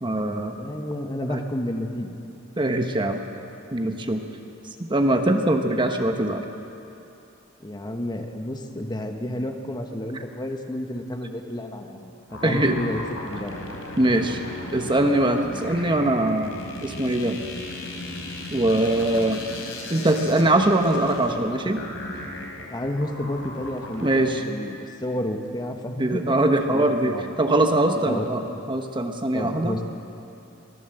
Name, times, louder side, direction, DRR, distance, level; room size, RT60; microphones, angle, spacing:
voice 1, 0.0-0.6 1.3-1.4 2.6-3.2 3.7-4.2 4.8-6.5 12.4-12.8 14.0-14.4 14.7-17.4 18.5-19.5 19.9-21.8 24.0-24.4 26.0-29.8, right 1 dB, 25° right, 5 dB, 1.1 m, -22 dB
voice 2, 0.6-2.2 2.4-2.5 7.6-13.6 14.1-14.2 22.7-26.3 26.7-27.3 28.0-28.3 29.3-29.8, left 1 dB, 20° left, 4 dB, 1.4 m, -31 dB
sound 1, 12.3-24.2, left 1 dB, 80° left, 3.9 m, -37 dB
23.5 x 17.0 x 7.8 m, 2.8 s
head